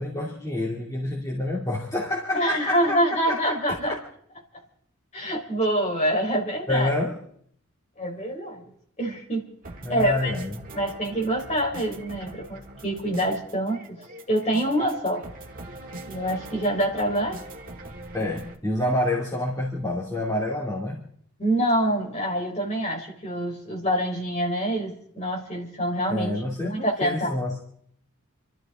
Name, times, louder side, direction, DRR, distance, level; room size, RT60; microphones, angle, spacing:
voice 1, 0.0-4.0 6.7-7.2 9.8-10.6 18.1-21.0 26.1-27.6, left 1 dB, 15° left, -5 dB, 2.6 m, -28 dB
voice 2, 2.3-4.0 5.1-6.9 8.0-8.6 9.0-9.4 9.9-10.4 10.7-14.0 14.3-15.2 16.1-17.4 21.4-26.3 26.6-27.3, right 1 dB, 30° left, -1 dB, 4.3 m, -26 dB
sound 1, 9.6-18.6, right 2 dB, 40° right, 1.8 m, -42 dB
28.5 x 13.0 x 3.7 m, 0.65 s
head